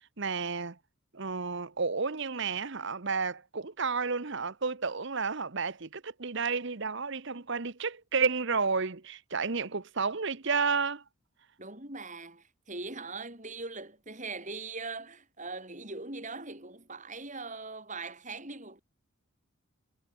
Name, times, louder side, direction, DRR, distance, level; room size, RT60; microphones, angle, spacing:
voice 1, 0.2-0.8 1.1-11.0, right 5 dB, 55° right, 1.1 m, -31 dB
voice 2, 11.6-18.8, right 3 dB, 35° right, 7.6 m, -41 dB
head